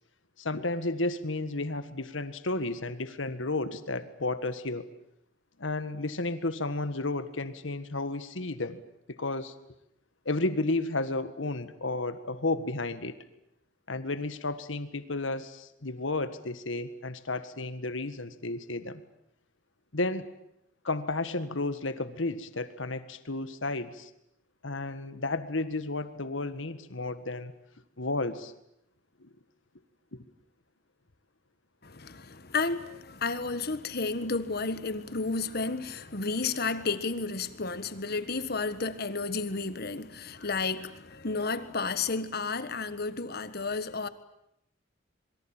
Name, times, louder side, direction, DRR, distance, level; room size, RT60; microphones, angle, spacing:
voice 1, 0.4-4.9 5.6-8.8 9.1-9.5 10.3-13.2 13.9-19.0 19.9-20.3 20.8-24.1 24.6-27.5 28.0-28.5 29.2-29.3 30.1-30.2, left 2 dB, 80° left, 1.7 m, -32 dB
voice 2, 31.8-44.1, left 4 dB, 55° left, 1.5 m, -32 dB
26.5 x 23.0 x 9.0 m
head